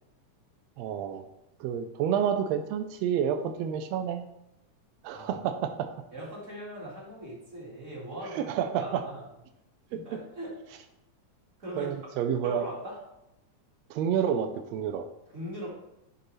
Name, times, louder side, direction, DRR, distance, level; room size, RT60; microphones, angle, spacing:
voice 1, 0.8-1.3 1.6-4.3 5.0-5.9 8.3-9.0 9.9-10.2 11.7-12.7 13.9-15.1, right 8 dB, 85° right, 7 dB, 1.5 m, -29 dB
voice 2, 6.1-8.5 8.8-9.2 9.9-10.8 11.6-11.9 12.4-13.0 15.3-15.7, equal, 30° right, -4 dB, 1.8 m, -40 dB
11.5 x 4.7 x 3.2 m, 0.88 s
omnidirectional pair, 3.5 m